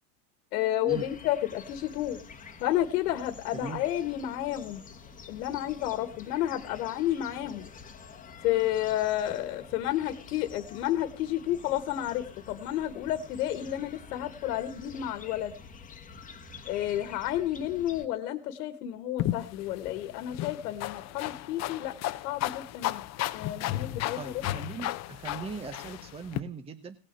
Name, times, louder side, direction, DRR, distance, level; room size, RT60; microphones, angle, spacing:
voice 1, 0.5-2.2 2.6-4.8 5.3-7.7 8.4-15.5 16.7-22.0 22.2-23.0 23.3-24.3, left 13 dB, 75° left, 11 dB, 1.7 m, -31 dB
sound 1, 0.9-18.1, left 5 dB, 15° left, 1.4 m, -48 dB
sound 2, 19.2-26.4, left 14 dB, 35° left, 0.8 m, -34 dB
voice 2, 24.2-27.0, right 4 dB, 10° right, 8 dB, 0.9 m, -39 dB
18.0 x 6.4 x 7.5 m, 0.37 s
supercardioid pair, 130°, 47 cm